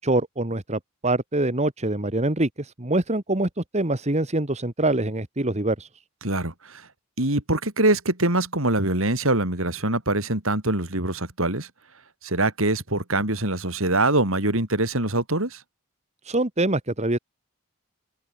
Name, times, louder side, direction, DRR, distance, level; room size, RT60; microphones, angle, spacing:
voice 1, 0.0-5.9 16.2-17.2, right 2 dB, 30° right, 1.7 m, -24 dB
voice 2, 6.2-6.9 7.2-11.7 12.2-15.6, right 2 dB, 65° right, 4.4 m, -24 dB
open air
head